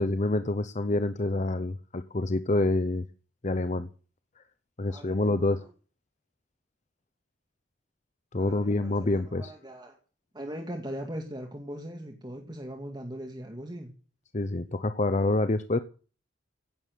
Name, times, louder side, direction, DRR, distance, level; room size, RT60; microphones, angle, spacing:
voice 1, 0.0-3.0 3.4-3.9 4.8-5.6 8.3-9.5 14.3-15.8, left 2 dB, 35° left, 11 dB, 0.7 m, -27 dB
voice 2, 4.9-5.7 8.4-10.0 10.3-13.9, equal, 20° right, 3 dB, 2.0 m, -40 dB
16.5 x 7.3 x 9.2 m, 0.39 s
head